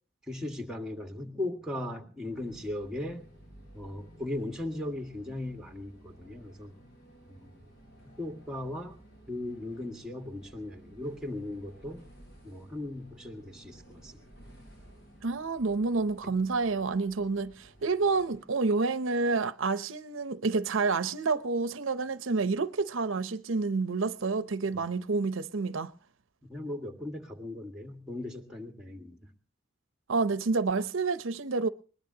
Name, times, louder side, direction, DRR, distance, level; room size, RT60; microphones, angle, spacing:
voice 1, 0.3-3.3 3.7-6.7 7.3-7.5 8.0-9.0 9.3-12.0 12.4-14.2 16.2-16.3 26.4-29.2, left 1 dB, 5° right, 1.8 m, -38 dB
sound 1, 2.3-18.4, equal, 55° left, 6.5 m, -55 dB
voice 2, 15.2-25.9 30.1-31.7, right 4 dB, 85° right, 0.7 m, -29 dB
21.0 x 20.0 x 2.8 m
head